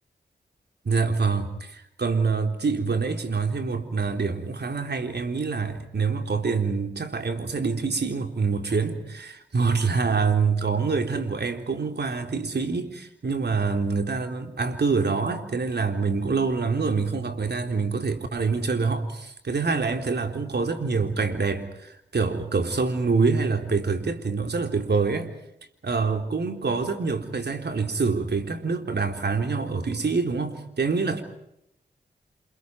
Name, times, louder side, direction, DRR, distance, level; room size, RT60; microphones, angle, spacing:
voice 1, 0.8-25.3 25.8-31.2, right 4 dB, 70° right, 5 dB, 3.9 m, -26 dB
29.0 x 28.5 x 4.8 m, 0.79 s
cardioid pair, 45°, 18 cm